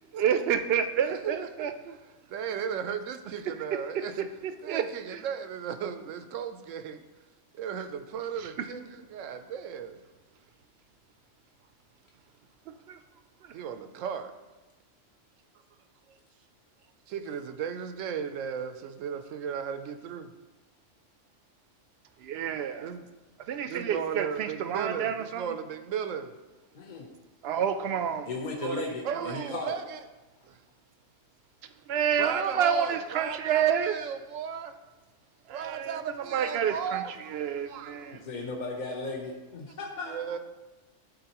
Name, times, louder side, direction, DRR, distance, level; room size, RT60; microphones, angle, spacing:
voice 1, 0.2-1.7 4.4-4.8 5.1-5.2 8.8-8.9 12.9-13.0 22.2-22.9 23.5-25.4 27.4-28.3 28.6-28.8 29.1-29.3 31.9-34.0 35.6-36.0 36.3-37.0 37.3-38.2, right 8 dB, 65° right, 8 dB, 0.7 m, -28 dB
voice 2, 1.0-1.5 2.3-4.3 4.6-7.0 7.5-10.0 13.5-14.3 17.1-20.3 22.8-23.1 23.6-26.3 29.0-30.0 30.4-30.6 32.2-34.7 35.5-37.9 39.6-39.8 40.0-40.4, right 7 dB, 85° right, 9 dB, 1.0 m, -36 dB
voice 3, 26.7-27.0 28.3-29.7 38.2-40.2, left 3 dB, 45° left, 0 dB, 0.8 m, -36 dB
11.5 x 4.1 x 2.9 m, 1.1 s
omnidirectional pair, 1.3 m